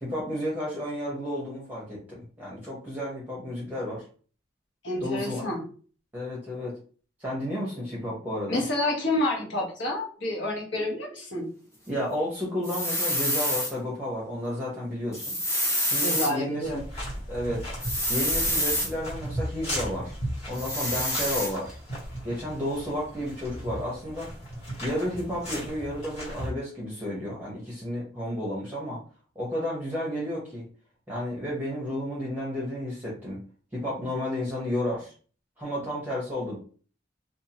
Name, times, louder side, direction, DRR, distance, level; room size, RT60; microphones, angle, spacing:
voice 1, 0.0-4.0 5.0-5.5 6.1-6.8 7.2-8.6 11.9-15.4 15.8-16.7 17.3-17.7 18.1-20.2 20.5-21.8 22.2-24.3 24.8-29.0 29.3-30.6 31.1-33.4 33.7-35.1 35.6-36.6, left 1 dB, 10° right, -6 dB, 0.9 m, -32 dB
voice 2, 4.8-5.7 8.5-11.5 16.0-16.8, left 1 dB, 65° left, -2 dB, 1.1 m, -29 dB
sound 1, 12.6-13.7 15.1-16.3 17.8-18.9 20.5-21.5, equal, 15° left, 0.9 m, -27 dB
sound 2, 16.6-26.5, equal, 35° left, 1.5 m, -36 dB
2.6 x 2.4 x 2.9 m, 0.40 s
head